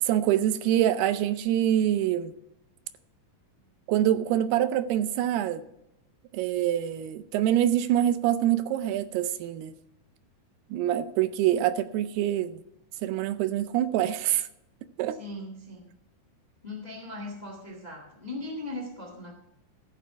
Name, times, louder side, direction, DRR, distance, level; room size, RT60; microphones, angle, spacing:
voice 1, 0.0-2.3 3.9-5.6 6.3-9.7 10.7-12.6 13.0-14.5 15.0-15.2, right 11 dB, 85° right, 2.6 m, -25 dB
voice 2, 15.2-15.9 16.6-19.3, left 2 dB, 40° left, 0.5 m, -39 dB
14.0 x 6.6 x 5.8 m
omnidirectional pair, 4.6 m